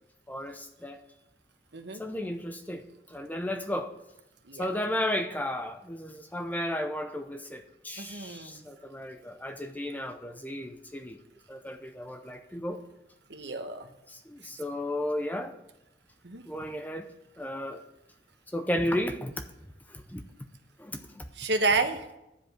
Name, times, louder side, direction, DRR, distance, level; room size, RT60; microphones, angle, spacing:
voice 1, 0.3-1.0 2.0-3.9 4.6-11.2 11.5-12.8 14.1-15.5 16.5-17.1 17.4-17.8 18.5-19.4 19.9-20.2 20.8-21.2, left 1 dB, 10° left, 0.6 m, -34 dB
voice 2, 8.0-8.6 13.3-13.9 16.2-16.4 21.3-22.1, right 3 dB, 65° right, 1.1 m, -30 dB
11.0 x 5.1 x 7.7 m
head